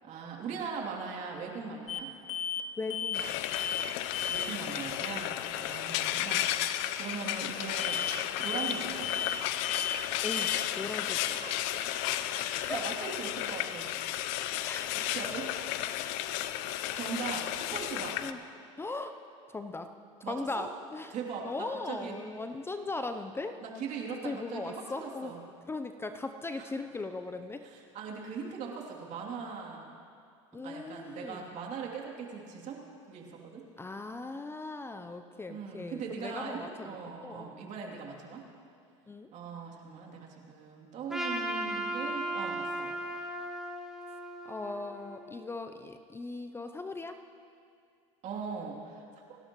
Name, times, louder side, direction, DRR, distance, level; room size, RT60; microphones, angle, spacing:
voice 1, 0.0-2.1 4.3-6.5 7.0-8.0 8.4-9.1 11.4-11.7 12.4-13.9 15.0-15.5 16.9-18.2 20.2-20.7 21.1-22.2 23.6-25.4 26.6-26.7 27.6-29.9 30.6-32.8 33.1-33.6 35.5-38.4 39.3-42.9 48.2-49.0 49.3-49.4, right 5 dB, 50° right, -1 dB, 3.0 m, -40 dB
sound 1, 1.9-2.0 2.3-2.6 2.9-3.3 3.5-3.9 4.1-4.5 7.8-8.1 8.4-8.8 9.0-9.4 9.6-10.0 10.2-10.6, left 8 dB, 45° left, 1.4 m, -33 dB
voice 2, 2.8-3.6 6.1-6.2 10.2-11.4 12.5-12.9 14.6-15.0 18.2-18.4 18.8-19.2 19.5-19.9 20.3-21.1 21.4-23.6 24.2-25.3 25.7-27.6 30.5-31.4 33.8-37.0 37.2-37.7 39.1-39.3 44.5-47.2, left 3 dB, 15° left, 8 dB, 0.6 m, -39 dB
Frying (food), 3.1-18.3, left 13 dB, 65° left, 0.7 m, -33 dB
Trumpet, 41.1-45.4, right 1 dB, 5° right, 1.9 m, -36 dB
28.5 x 12.0 x 3.1 m, 2.4 s
hypercardioid pair, 90°, 16 cm